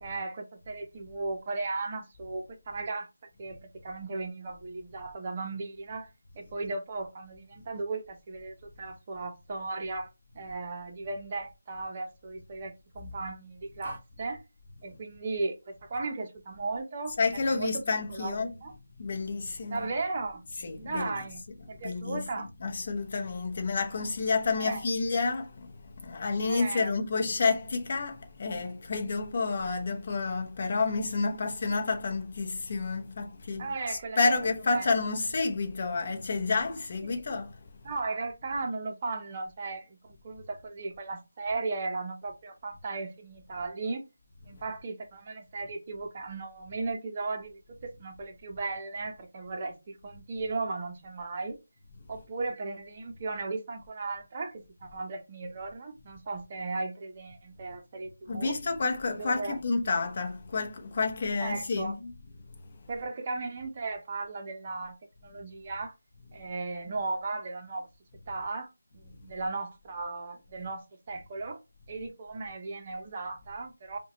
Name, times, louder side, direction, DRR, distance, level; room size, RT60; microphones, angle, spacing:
voice 1, 0.0-3.1 3.4-3.6 3.8-10.1 10.3-14.4 14.8-17.2 17.5-17.7 18.1-18.7 19.7-20.4 20.8-22.5 24.6-24.9 26.5-26.9 33.6-34.3 34.7-34.9 37.0-37.1 37.8-44.0 44.4-51.6 52.1-58.6 59.2-59.6 61.4-62.0 62.9-65.0 65.2-65.9 66.3-67.9 68.3-68.7 68.9-71.6 71.9-74.0, right 3 dB, 20° right, 0.7 m, -36 dB
voice 2, 17.2-18.7 19.0-19.9 20.5-38.0 58.3-62.2 62.7-62.9, left 4 dB, 30° left, 0.8 m, -30 dB
5.4 x 2.2 x 2.9 m
figure-of-eight pair, 175°, 0 cm